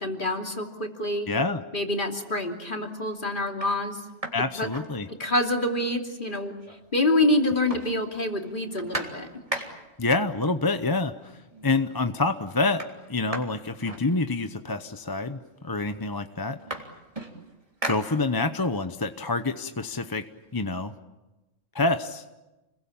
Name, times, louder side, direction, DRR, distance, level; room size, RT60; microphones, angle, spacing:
voice 1, 0.0-1.3 1.7-4.0 4.6-4.7 5.2-6.5 6.9-9.3, left 1 dB, 40° left, 2 dB, 3.1 m, -26 dB
voice 2, 1.3-1.6 4.3-5.1 10.0-12.8 13.1-16.6 17.8-20.3 20.5-20.9 21.7-22.2, left 3 dB, 20° left, 8 dB, 0.8 m, -27 dB
sound 1, 2.1-2.5 3.0-3.1 3.5-5.6 5.9-6.0 6.2-7.1 7.3-10.1 11.0-11.1 11.5-12.0 12.2-14.7 15.5-15.6 15.9-18.7 19.1-20.8, right 1 dB, 25° right, 3.4 m, -38 dB
30.0 x 22.0 x 8.7 m, 1.1 s
omnidirectional pair, 1.3 m